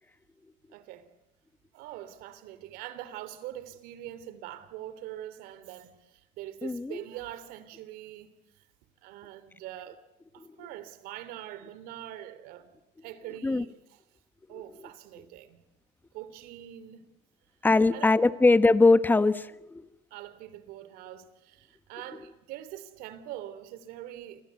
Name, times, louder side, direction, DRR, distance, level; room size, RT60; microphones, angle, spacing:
voice 1, 0.7-1.1 1.7-8.7 9.0-10.0 10.3-12.7 13.0-14.0 14.5-15.6 16.1-17.1 17.9-18.1 20.1-24.4, right 12 dB, 65° right, 3.1 m, -43 dB
voice 2, 6.6-7.0 13.4-13.6 17.6-19.9, left 3 dB, 10° left, 1.3 m, -21 dB
29.0 x 24.0 x 8.3 m
supercardioid pair, 110°, 16 cm